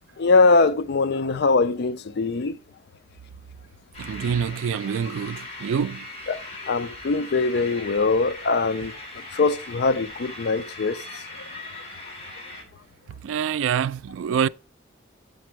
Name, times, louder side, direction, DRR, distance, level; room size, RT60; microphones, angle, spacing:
voice 1, 0.2-2.5 6.3-8.9 9.3-11.0, left 3 dB, 60° left, 0.5 m, -22 dB
sound 1, 3.9-12.6, left 2 dB, 35° left, 2.5 m, -40 dB
voice 2, 4.0-6.0 13.2-14.5, right 7 dB, 85° right, 0.3 m, -26 dB
7.6 x 5.2 x 4.4 m
head